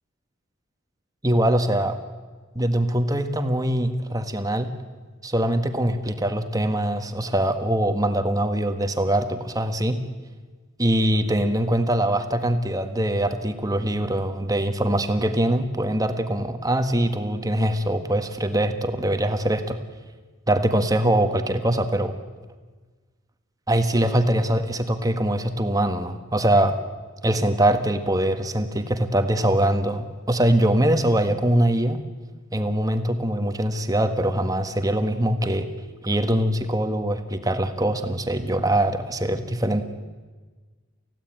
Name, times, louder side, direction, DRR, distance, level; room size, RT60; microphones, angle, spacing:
voice 1, 1.2-2.0 2.5-4.7 5.2-10.0 10.8-19.8 20.5-22.1 23.7-26.8 27.2-32.0 32.5-35.7 36.0-39.8, right 1 dB, 15° right, 7 dB, 1.4 m, -23 dB
29.0 x 16.0 x 9.0 m, 1.4 s
head